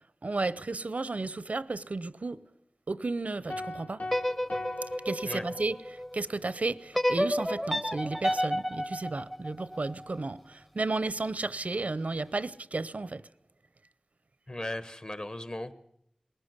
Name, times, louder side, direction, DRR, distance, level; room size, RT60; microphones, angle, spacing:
voice 1, 0.2-2.4 2.9-4.0 5.0-13.2, right 3 dB, 75° right, 0.7 m, -33 dB
sound 1, 3.5-6.0, left 2 dB, 85° left, 1.2 m, -40 dB
sound 2, 4.0-6.2 6.9-10.1, equal, 10° left, 0.8 m, -31 dB
voice 2, 14.5-15.7, left 1 dB, 40° left, 1.4 m, -37 dB
20.0 x 18.0 x 8.2 m
wide cardioid pair, 60°, 2 cm